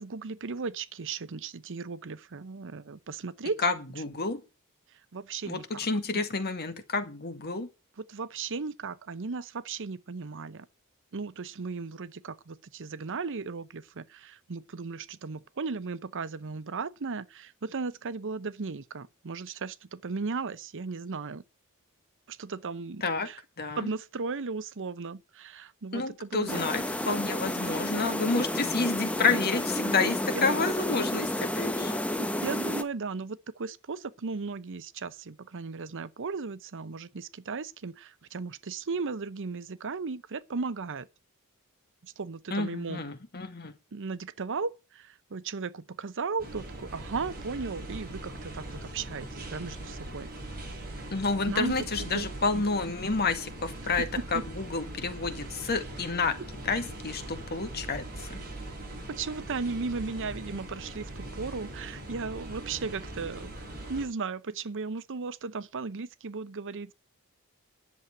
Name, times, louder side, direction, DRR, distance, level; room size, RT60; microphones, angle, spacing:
voice 1, 0.0-3.6 5.1-5.8 6.1-6.2 8.1-10.7 11.1-21.4 22.3-23.4 23.8-26.6 29.3-29.4 30.3-30.4 32.2-41.1 42.0-43.0 43.9-50.3 51.5-52.3 54.2-54.4 59.1-63.5 63.9-66.9, right 4 dB, 60° right, 0.7 m, -36 dB
voice 2, 3.6-4.4 5.5-7.7 23.0-23.3 23.6-23.9 25.9-32.0 42.5-43.7 51.1-56.4 56.6-58.4, left 4 dB, 45° left, 1.9 m, -30 dB
sound 1, 26.5-32.8, left 1 dB, 5° left, 1.1 m, -31 dB
sound 2, 46.4-64.1, right 1 dB, 40° right, 7.3 m, -41 dB
10.5 x 7.5 x 8.7 m
head